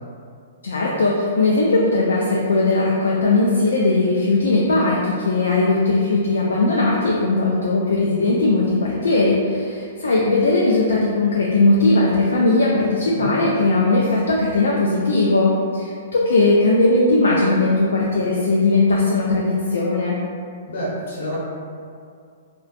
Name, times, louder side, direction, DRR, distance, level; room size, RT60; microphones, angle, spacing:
voice 1, 0.6-20.2, left 2 dB, 85° left, -4 dB, 0.3 m, -18 dB
voice 2, 13.1-13.4 20.7-21.4, equal, 70° left, -7 dB, 0.9 m, -29 dB
2.4 x 2.1 x 2.5 m, 2.3 s
hypercardioid pair, 130°, 0 cm